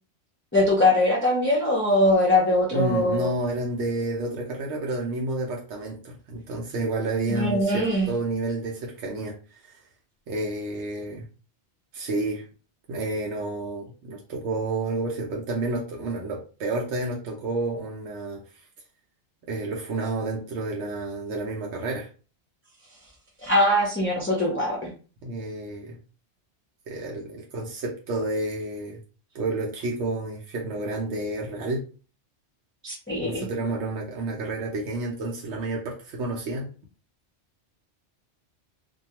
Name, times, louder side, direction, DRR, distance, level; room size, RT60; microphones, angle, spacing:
voice 1, 0.5-3.3 7.3-8.1 23.4-24.8 32.8-33.5, left 1 dB, 20° left, -4 dB, 0.3 m, -22 dB
voice 2, 2.7-9.8 10.3-11.2 11.9-12.4 12.9-18.4 19.5-22.1 25.2-26.0 26.9-29.0 29.3-31.8 33.2-36.7, right 2 dB, 85° right, -2 dB, 0.9 m, -30 dB
2.3 x 2.2 x 2.8 m, 0.37 s
omnidirectional pair, 1.1 m